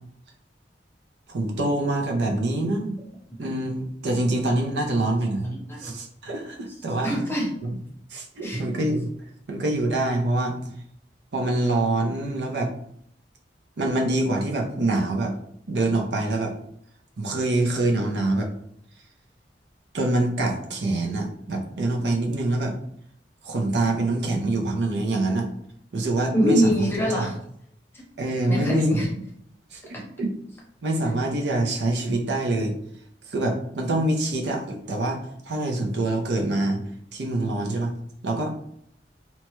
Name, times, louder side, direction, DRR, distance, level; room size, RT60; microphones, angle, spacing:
voice 1, 1.3-3.0 3.4-5.5 5.8-7.1 7.6-7.7 8.1-9.1 9.5-10.6 11.3-12.7 13.8-15.4 15.7-16.5 17.2-18.5 19.9-22.7 23.4-25.5 25.9-26.7 27.1-27.3 28.2-29.0 29.7-30.3 30.8-32.7 33.3-35.2 35.4-36.8 37.1-37.9 38.2-38.5, right 2 dB, 70° right, 2 dB, 0.5 m, -25 dB
voice 2, 5.4-5.9 7.0-7.6 8.4-8.6 26.3-27.4 27.9-28.0 28.5-29.1, equal, 15° left, -3 dB, 0.7 m, -24 dB
2.9 x 2.2 x 3.0 m, 0.69 s
head